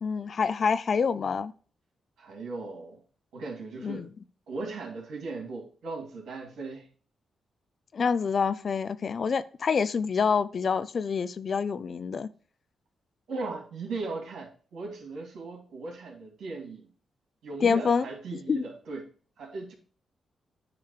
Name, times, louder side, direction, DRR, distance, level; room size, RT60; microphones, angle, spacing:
voice 1, 0.0-1.5 3.8-4.1 7.9-12.3 17.6-18.1 18.3-18.6, left 5 dB, 55° left, 0.5 m, -27 dB
voice 2, 2.2-3.0 3.3-4.1 4.5-6.9 13.3-16.9 17.4-19.0 19.4-19.7, right 3 dB, 80° right, 2.6 m, -38 dB
9.5 x 3.3 x 6.5 m
cardioid pair, 70°, 0 cm